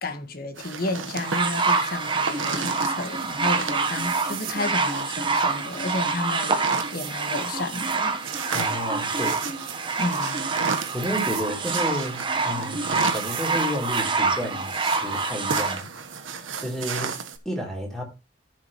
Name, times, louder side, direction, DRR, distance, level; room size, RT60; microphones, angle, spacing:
voice 1, 0.0-8.2 10.0-10.6, left 2 dB, 50° left, 1.6 m, -32 dB
sound 1, 0.6-17.4, right 5 dB, 85° right, 1.3 m, -35 dB
sound 2, 1.2-15.8 16.7-16.8, right 4 dB, 25° right, 1.3 m, -26 dB
voice 2, 8.5-9.7 10.9-14.7 15.0-15.9 16.6-17.2 17.5-18.0, equal, ahead, 3.5 m, -31 dB
14.5 x 6.5 x 3.1 m
head